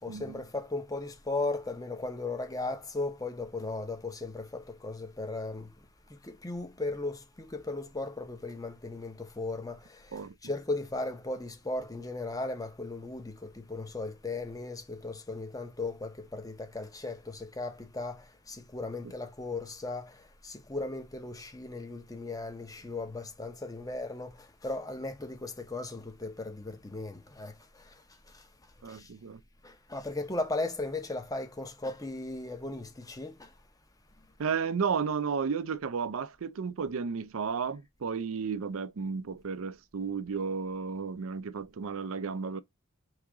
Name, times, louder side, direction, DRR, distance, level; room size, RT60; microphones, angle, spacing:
voice 1, 0.0-5.7 6.1-28.5 28.8-29.1 29.6-33.5 34.5-34.6, left 2 dB, 15° left, 0.7 m, -37 dB
voice 2, 28.8-29.4 34.4-42.6, right 5 dB, 70° right, 0.5 m, -33 dB
4.8 x 2.9 x 3.5 m
head